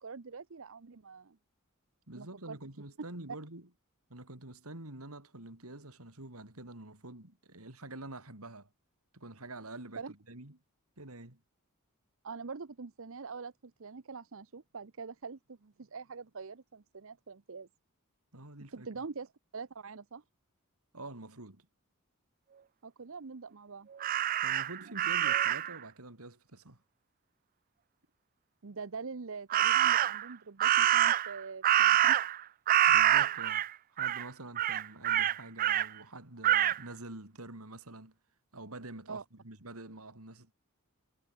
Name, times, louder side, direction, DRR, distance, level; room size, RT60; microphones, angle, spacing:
voice 1, 0.0-1.4 2.1-2.6 10.0-10.1 12.2-17.7 18.7-20.2 22.8-23.9 24.8-24.9 28.6-32.2 39.1-39.2, right 4 dB, 60° right, 0.8 m, -44 dB
voice 2, 2.1-3.7 4.1-8.7 9.1-10.6 11.0-11.4 18.3-18.9 20.9-21.7 24.4-26.8 32.9-33.6 33.9-38.1 38.5-40.5, right 2 dB, 80° right, 3.8 m, -47 dB
Crow, 24.0-25.8 29.5-30.3 30.6-32.4 32.7-33.7 34.0-34.2 34.6-35.9 36.4-36.8, right 11 dB, 40° right, 0.3 m, -26 dB
head